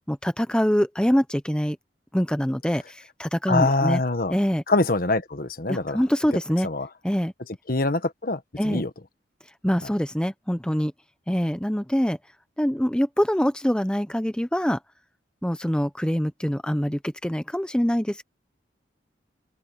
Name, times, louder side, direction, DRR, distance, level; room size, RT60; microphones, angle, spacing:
voice 1, 0.0-1.8 2.1-4.0 4.3-4.6 5.7-6.7 7.0-7.3 8.6-8.8 9.6-10.9 11.3-12.2 12.6-14.8 15.4-18.2, equal, 5° left, 0.7 m, -24 dB
voice 2, 3.5-4.3 4.7-6.0 6.6-6.9 7.7-8.9, left 2 dB, 55° left, 1.4 m, -24 dB
open air
head